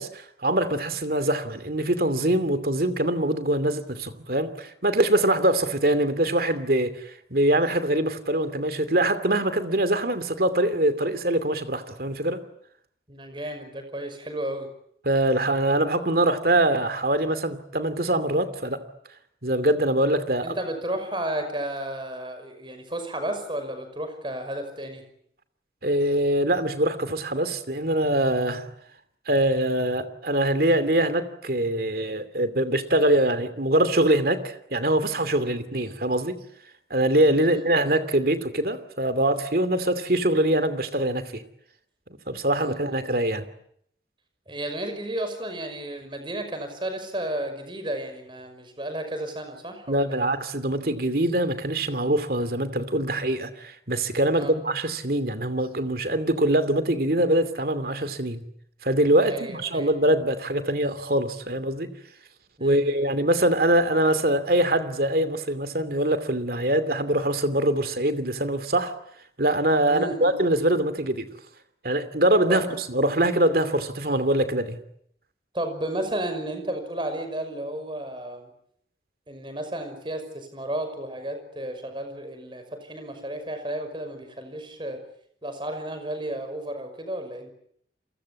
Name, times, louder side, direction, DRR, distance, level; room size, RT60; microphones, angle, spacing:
voice 1, 0.0-6.9 7.3-12.4 15.0-18.8 19.4-20.6 25.8-28.7 29.3-36.4 36.9-41.4 42.3-43.4 49.9-58.5 58.8-61.9 62.6-68.9 69.4-71.3 71.8-74.8, right 1 dB, 55° right, 2.7 m, -23 dB
voice 2, 13.1-14.7 20.4-25.0 35.3-35.6 37.4-37.6 42.5-43.1 44.5-50.3 54.3-54.6 59.2-59.9 62.6-63.1 69.9-70.3 72.5-72.7 75.5-78.5 79.3-85.0 85.4-87.5, right 1 dB, 25° right, 5.8 m, -33 dB
29.5 x 23.5 x 8.6 m
head